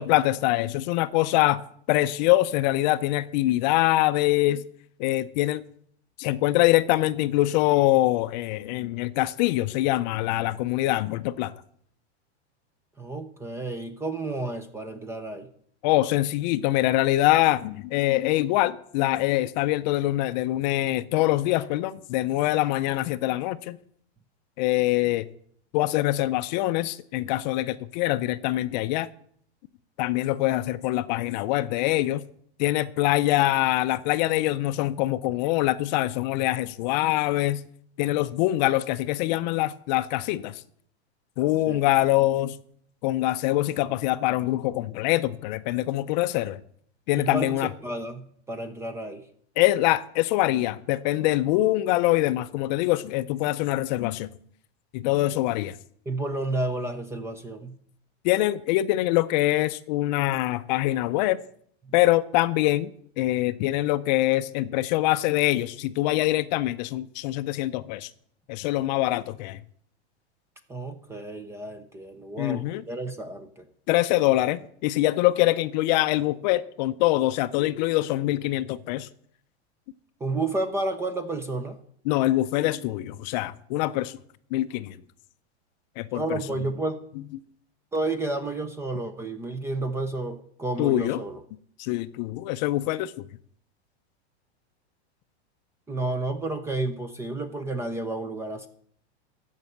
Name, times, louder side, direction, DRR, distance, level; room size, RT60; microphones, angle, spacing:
voice 1, 0.0-1.6 1.9-4.6 5.0-5.6 6.2-11.5 15.8-23.8 24.6-25.3 25.7-29.1 30.0-32.2 32.6-37.6 38.0-40.6 41.4-42.6 43.0-46.6 47.1-47.7 49.6-54.3 54.9-55.7 58.2-61.4 61.9-68.1 68.5-69.6 72.4-72.8 73.9-79.1 82.1-84.2 84.5-85.0 86.0-86.2 90.8-91.2 91.8-93.1, left 16 dB, 40° left, 0.5 m, -24 dB
voice 2, 13.0-15.5 41.7-41.8 47.1-49.3 56.1-57.8 61.8-61.9 70.7-73.7 80.2-81.8 86.1-87.0 87.9-91.4 95.9-98.7, right 2 dB, 10° right, 0.5 m, -31 dB
14.5 x 5.6 x 7.8 m
supercardioid pair, 150°, 33 cm